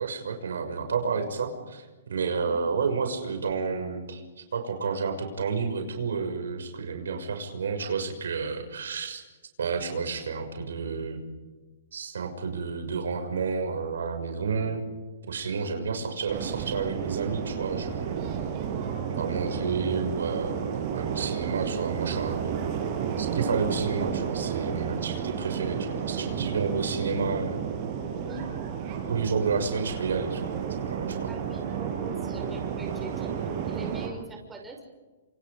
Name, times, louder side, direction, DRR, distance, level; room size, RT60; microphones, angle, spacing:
voice 1, 0.0-4.2 4.5-9.2 9.6-11.2 11.9-14.8 15.2-18.3 19.1-22.4 23.2-27.6 29.1-30.5 30.8-31.3, right 5 dB, 85° right, 5 dB, 6.4 m, -30 dB
voice 2, 2.4-2.7 15.6-15.9 28.1-28.5 31.3-33.3 33.7-34.8, right 2 dB, 10° right, 1 dB, 6.0 m, -42 dB
sound 1, 16.3-34.1, right 7 dB, 35° right, 6.0 m, -32 dB
28.5 x 27.5 x 5.3 m, 1.2 s
hypercardioid pair, 150°, 0 cm